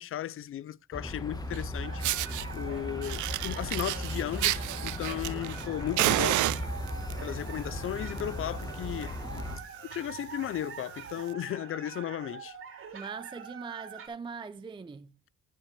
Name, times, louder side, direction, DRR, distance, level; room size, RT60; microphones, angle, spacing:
voice 1, 0.0-6.5 7.2-9.2 9.9-12.6, left 11 dB, 45° left, 0.4 m, -35 dB
sound 1, 0.9-9.6, left 1 dB, 15° left, 1.2 m, -37 dB
Fire, 1.5-1.6 2.0-2.4 3.0-5.6 6.0-7.1 7.9-8.2 8.5-8.6 9.0-9.1 9.3-9.6 10.1-10.2 11.2-11.3, right 17 dB, 75° right, 0.4 m, -30 dB
sound 2, 1.8-14.1, right 6 dB, 45° right, 2.5 m, -45 dB
voice 2, 12.9-15.1, right 5 dB, 15° right, 0.4 m, -41 dB
10.5 x 7.4 x 3.2 m
cardioid pair, 90°, 30 cm